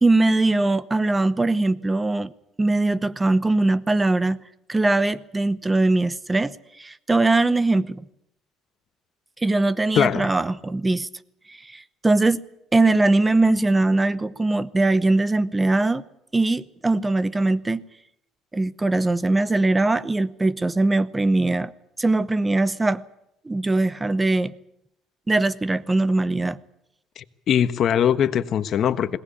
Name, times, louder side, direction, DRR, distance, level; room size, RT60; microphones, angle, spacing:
voice 1, 0.0-2.3 2.6-4.4 4.7-8.1 9.4-11.1 11.5-12.4 12.7-16.0 16.3-17.8 18.5-21.7 22.0-23.0 23.4-24.5 25.3-26.6, right 2 dB, 15° right, 19 dB, 0.9 m, -21 dB
voice 2, 9.9-10.3 27.2-29.2, left 9 dB, 50° left, 12 dB, 1.3 m, -21 dB
21.5 x 18.5 x 8.6 m, 0.79 s
cardioid pair, 115°, 0 cm